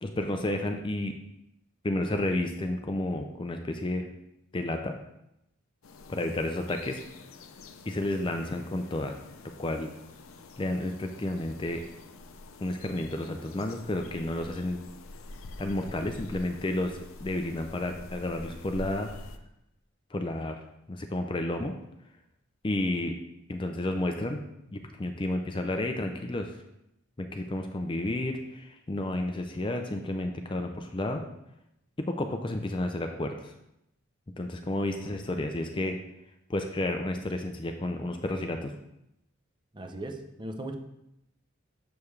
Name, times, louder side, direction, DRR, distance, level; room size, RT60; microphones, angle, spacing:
voice 1, 0.0-1.1 1.8-4.1 4.5-5.0 6.1-7.0 7.9-9.2 9.6-9.9 10.6-11.8 12.6-14.8 15.6-19.1 20.1-20.6 20.9-21.7 22.6-23.1 23.5-24.4 24.7-26.5 27.2-31.2 32.0-33.5 34.4-36.0 36.5-38.7, left 1 dB, 25° left, 5 dB, 0.4 m, -31 dB
sound 1, 5.8-19.4, left 2 dB, 75° left, 0.6 m, -47 dB
voice 2, 39.7-40.7, right 1 dB, 20° right, 4 dB, 0.6 m, -38 dB
7.0 x 6.8 x 3.2 m, 0.84 s
head